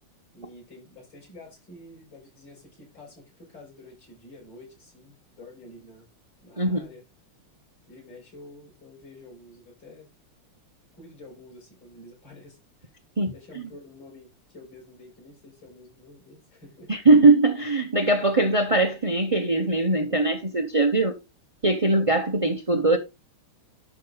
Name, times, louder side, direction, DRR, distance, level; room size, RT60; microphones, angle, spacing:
voice 1, 0.3-6.1 6.4-7.0 7.9-10.1 10.9-12.9 13.3-16.9, left 2 dB, 60° left, 6.6 m, -48 dB
voice 2, 16.9-21.2 21.6-23.0, right 2 dB, 60° right, 0.3 m, -21 dB
12.0 x 4.1 x 4.0 m
omnidirectional pair, 2.4 m